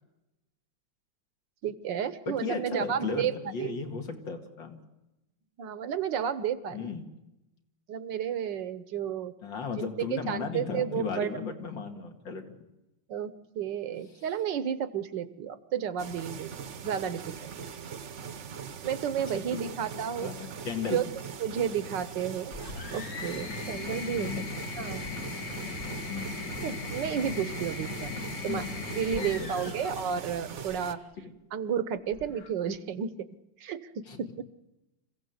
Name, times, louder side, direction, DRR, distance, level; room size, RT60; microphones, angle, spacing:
voice 1, 1.6-3.7 5.6-7.0 7.9-9.3 10.0-11.3 13.1-16.5 16.8-17.7 18.8-20.3 20.8-21.0 21.4-22.5 22.9-24.3 24.8-25.0 26.6-28.1 28.4-28.6 28.9-31.0 31.5-33.1 33.6-34.4, right 8 dB, 70° right, 14 dB, 1.5 m, -32 dB
voice 2, 2.3-4.8 6.7-7.1 9.4-12.6 19.3-19.6 20.2-21.0 24.2-24.5 26.1-26.3 28.5-28.7 29.1-29.7 31.2-31.3 34.1-34.2, left 4 dB, 75° left, 4 dB, 2.9 m, -35 dB
sound 1, 16.0-30.9, right 7 dB, 50° right, 1.0 m, -41 dB
sound 2, 22.5-30.9 32.1-32.8, left 4 dB, 45° left, 1.4 m, -38 dB
26.5 x 16.0 x 7.9 m, 0.97 s
omnidirectional pair, 2.0 m